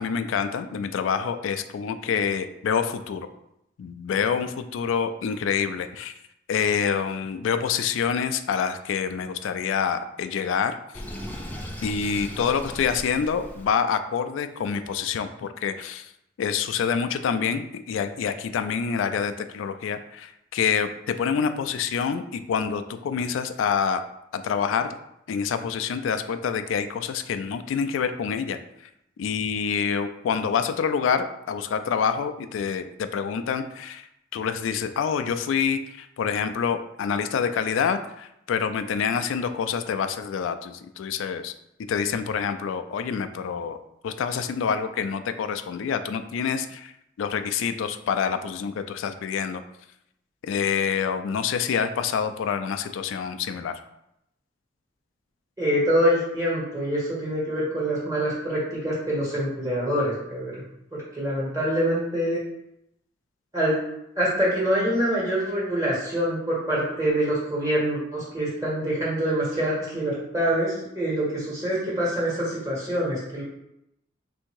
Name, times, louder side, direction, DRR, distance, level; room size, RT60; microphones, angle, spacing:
voice 1, 0.0-3.3 3.8-6.1 6.5-11.0 11.8-16.1 16.4-24.0 24.3-25.0 25.3-28.6 29.2-34.1 34.3-41.5 41.9-43.8 44.0-46.9 47.2-49.6 50.4-53.8, left 6 dB, 85° left, 9 dB, 0.3 m, -27 dB
Sink (filling or washing), 10.9-13.7, equal, 10° left, 0.4 m, -37 dB
voice 2, 55.6-60.5 61.2-62.4 63.5-63.7 64.2-73.4, equal, 20° right, -6 dB, 1.4 m, -25 dB
3.4 x 2.7 x 4.5 m, 0.81 s
head